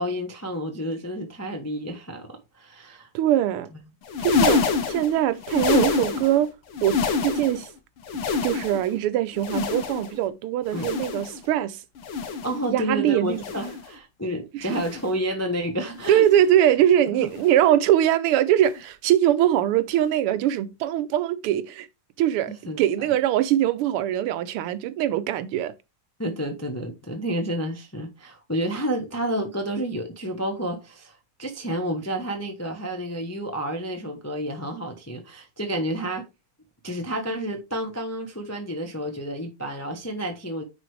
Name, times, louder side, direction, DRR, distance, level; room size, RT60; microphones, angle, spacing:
voice 1, 0.0-3.1 10.7-10.9 12.4-16.3 17.1-17.3 22.5-23.1 26.2-36.3 36.8-40.6, equal, 20° left, 0.4 m, -30 dB
voice 2, 3.1-3.7 4.2-4.6 4.9-6.5 6.8-7.7 8.4-11.8 12.7-13.4 14.5-14.8 16.1-21.9 22.2-25.7, right 11 dB, 85° right, 1.6 m, -22 dB
sound 1, 4.0-6.4 6.7-7.7 8.0-9.0 9.4-10.2 10.7-11.4 12.0-12.6 13.3-13.9 14.6-15.2 16.0-16.4 17.3-17.6 18.6-18.8 20.0-20.1, left 5 dB, 80° left, 2.0 m, -27 dB
9.8 x 4.2 x 3.1 m
omnidirectional pair, 2.4 m